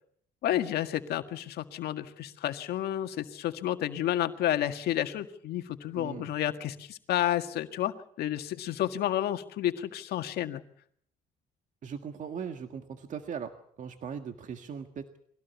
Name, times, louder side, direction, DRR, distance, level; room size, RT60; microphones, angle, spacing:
voice 1, 0.4-10.6, left 12 dB, 70° left, 7 dB, 1.8 m, -31 dB
voice 2, 5.9-6.3 11.8-15.2, right 7 dB, 50° right, 7 dB, 1.8 m, -39 dB
23.0 x 17.5 x 8.3 m, 0.65 s
cardioid pair, 110°, 17 cm